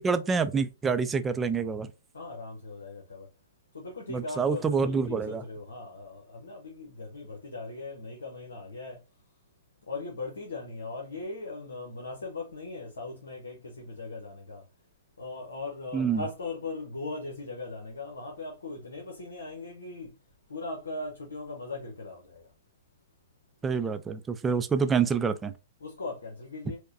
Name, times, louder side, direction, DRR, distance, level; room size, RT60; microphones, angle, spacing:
voice 1, 0.0-1.9 4.1-5.4 15.9-16.2 23.6-25.5, right 5 dB, 15° right, 0.4 m, -27 dB
voice 2, 2.1-3.3 3.7-9.0 9.9-14.6 15.2-20.1 20.5-22.5 25.8-26.8, left 3 dB, 80° left, 0.9 m, -39 dB
4.5 x 2.2 x 2.5 m
hypercardioid pair, 120°, 0 cm